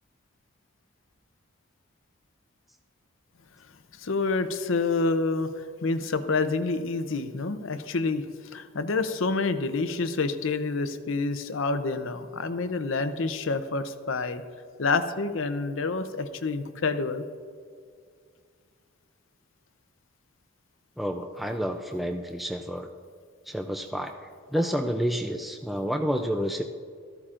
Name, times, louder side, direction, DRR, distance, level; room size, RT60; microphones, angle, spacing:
voice 1, 4.0-8.3 8.5-14.4 14.8-17.2, left 3 dB, 65° left, 10 dB, 0.6 m, -28 dB
voice 2, 21.0-22.9 23.5-26.6, equal, ahead, 4 dB, 0.3 m, -29 dB
14.0 x 13.5 x 2.5 m, 2.1 s
head